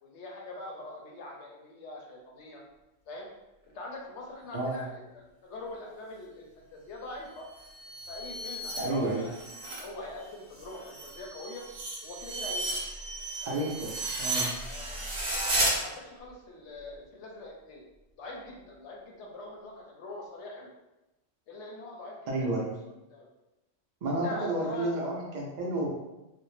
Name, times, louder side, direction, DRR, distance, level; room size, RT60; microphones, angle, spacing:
voice 1, 0.0-2.6 3.1-3.3 3.7-4.9 5.1-7.5 8.1-9.3 9.7-11.6 12.0-12.9 13.4-13.7 14.7-15.0 15.6-17.8 18.2-20.7 21.5-22.7 23.1-23.3 24.0-24.9, left 2 dB, 70° left, -1 dB, 0.8 m, -43 dB
voice 2, 4.5-4.8 8.8-9.2 13.5-13.9 14.2-14.5 22.3-22.7 24.0-25.9, right 2 dB, 80° right, -3 dB, 0.4 m, -30 dB
sound 1, 7.5-9.9 10.2-15.7, right 2 dB, 40° right, 0.7 m, -34 dB
2.5 x 2.0 x 3.1 m, 0.98 s
omnidirectional pair, 1.3 m